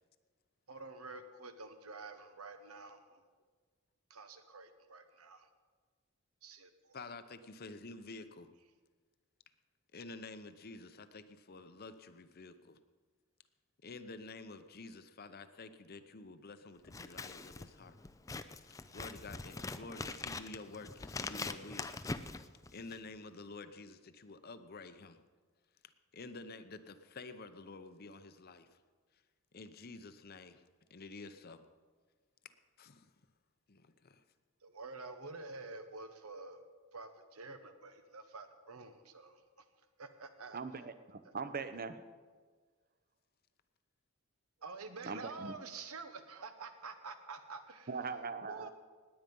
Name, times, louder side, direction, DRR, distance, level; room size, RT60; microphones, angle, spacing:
voice 1, 0.7-3.2 4.1-5.5 6.4-7.0 34.6-36.6 36.9-39.4 40.0-40.6 44.6-47.9 48.5-48.7, right 3 dB, 85° right, 8 dB, 1.2 m, -48 dB
voice 2, 6.9-8.5 9.9-12.8 13.8-17.9 18.9-22.0 22.7-25.2 26.1-28.8 29.5-30.6 30.9-31.6 32.8-33.1 33.7-34.2, left 3 dB, 45° left, 11 dB, 0.7 m, -50 dB
Scissors, 16.8-23.1, left 3 dB, 15° left, 0.4 m, -43 dB
voice 3, 40.5-42.0 45.0-45.5 47.9-48.7, right 4 dB, 45° right, 11 dB, 0.8 m, -41 dB
19.0 x 9.0 x 5.4 m, 1.5 s
head